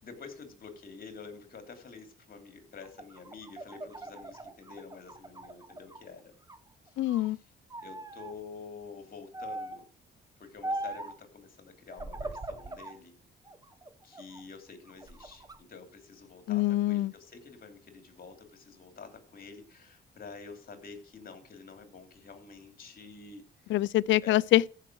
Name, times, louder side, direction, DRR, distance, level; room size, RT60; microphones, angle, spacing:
voice 1, 0.0-6.3 6.8-7.4 7.8-9.9 10.4-13.1 14.0-23.7 24.2-24.4, left 5 dB, 45° left, 3.2 m, -48 dB
sound 1, 2.8-6.0 6.4-7.3 7.7-8.3 9.3-9.9 10.6-11.2 11.9-13.0 13.5-14.4 14.9-15.6, right 1 dB, 20° right, 1.1 m, -40 dB
voice 2, 7.0-7.4 16.5-17.1 23.7-24.7, left 15 dB, 70° left, 0.5 m, -25 dB
14.0 x 5.8 x 6.3 m
cardioid pair, 90°, 20 cm